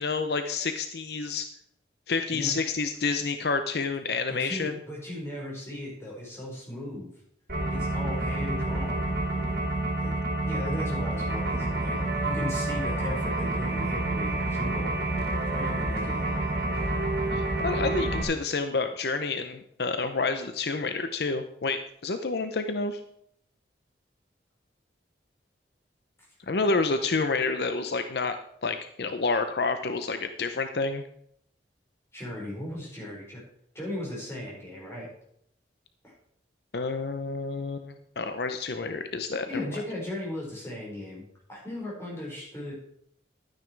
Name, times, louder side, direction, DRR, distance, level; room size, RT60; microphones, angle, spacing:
voice 1, 0.0-1.5 2.1-4.8 17.3-23.0 26.5-31.0 36.7-39.6, left 4 dB, 65° left, 8 dB, 0.6 m, -29 dB
voice 2, 4.3-7.1 7.6-9.1 10.0-10.1 10.4-14.9 15.5-16.3 32.1-33.4 33.7-35.1 36.0-36.1 39.5-41.2 41.5-42.7, left 1 dB, 15° left, -5 dB, 4.7 m, -37 dB
sound 1, 7.5-18.2, right 2 dB, 60° right, 2.6 m, -28 dB
11.5 x 9.3 x 4.6 m, 0.70 s
head